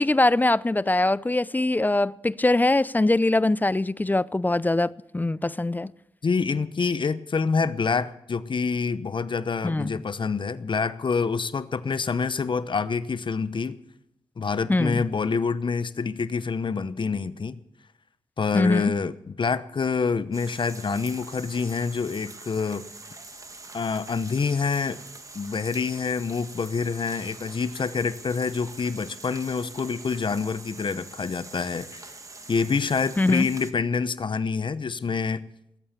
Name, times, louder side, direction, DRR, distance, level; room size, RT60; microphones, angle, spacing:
voice 1, 0.0-5.9 9.6-10.0 14.7-15.0 18.5-18.9 33.2-33.5, left 2 dB, 15° left, 0.4 m, -22 dB
voice 2, 6.2-13.8 14.4-17.6 18.4-22.8 23.7-25.0 25.3-32.0 32.5-35.5, left 5 dB, 50° left, 0.9 m, -27 dB
sound 1, 20.3-33.7, right 3 dB, 30° right, 1.4 m, -44 dB
20.0 x 8.7 x 6.8 m
cardioid pair, 50°, 11 cm